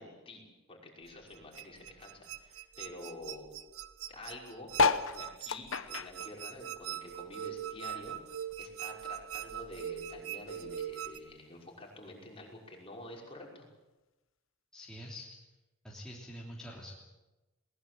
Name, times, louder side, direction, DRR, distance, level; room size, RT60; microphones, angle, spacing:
voice 1, 0.0-3.5 4.1-4.7 5.1-8.2 8.6-13.7, left 2 dB, 25° left, -1 dB, 5.8 m, -48 dB
sound 1, 1.1-11.2, right 10 dB, 75° right, 1.4 m, -42 dB
sound 2, 4.7-7.5 7.8-9.3 9.8-9.9 10.1-10.2 10.4-10.8 11.6-11.7, left 4 dB, 65° left, 1.1 m, -32 dB
voice 2, 14.7-15.3 15.8-16.9, equal, 5° left, -4 dB, 3.2 m, -45 dB
22.0 x 20.0 x 7.9 m, 1.1 s
head